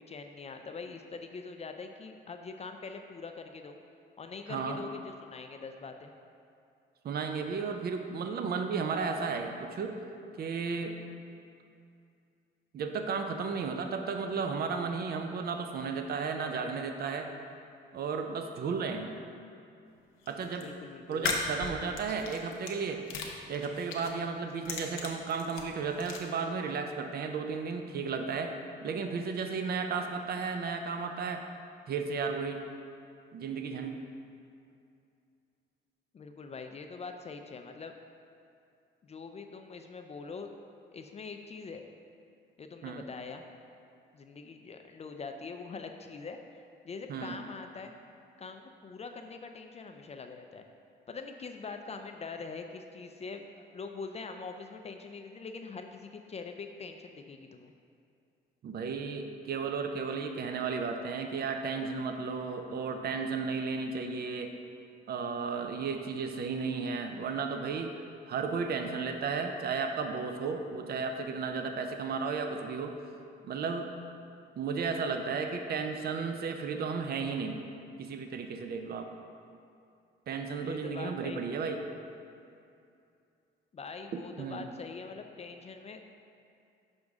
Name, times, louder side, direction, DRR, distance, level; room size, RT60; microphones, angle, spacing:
voice 1, 0.0-3.8 4.2-6.1 20.6-21.4 36.1-37.9 39.0-40.5 40.9-41.8 42.6-43.4 44.1-47.9 48.4-50.7 51.1-53.5 53.7-57.7 80.6-81.4 83.7-86.0, left 4 dB, 35° left, 5 dB, 0.4 m, -43 dB
voice 2, 4.5-4.8 7.0-10.0 10.4-11.0 12.7-17.3 17.9-19.2 20.3-20.7 21.1-23.0 23.5-28.5 28.8-31.5 31.9-32.6 33.3-34.0 42.8-43.1 47.1-47.4 58.6-64.5 65.1-67.9 68.3-72.9 73.4-73.9 74.6-77.5 78.0-79.1 80.3-81.8 84.1-84.6, right 5 dB, 50° right, 6 dB, 0.6 m, -34 dB
sound 1, 20.2-20.6 21.1-22.7 23.1-24.1 24.5-26.2, left 5 dB, 85° left, 0.7 m, -36 dB
6.4 x 5.1 x 3.6 m, 2.5 s
cardioid pair, 90°, 20 cm